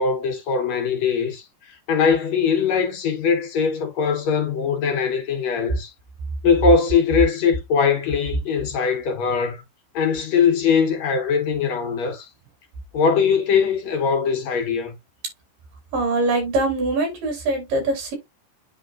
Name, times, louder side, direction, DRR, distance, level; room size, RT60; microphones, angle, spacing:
voice 1, 0.0-1.4 1.9-5.9 6.4-9.6 9.9-12.3 12.9-15.0, left 6 dB, 60° left, 2.4 m, -21 dB
voice 2, 15.9-18.1, right 2 dB, 80° right, 5.0 m, -23 dB
10.5 x 3.9 x 2.5 m
omnidirectional pair, 3.8 m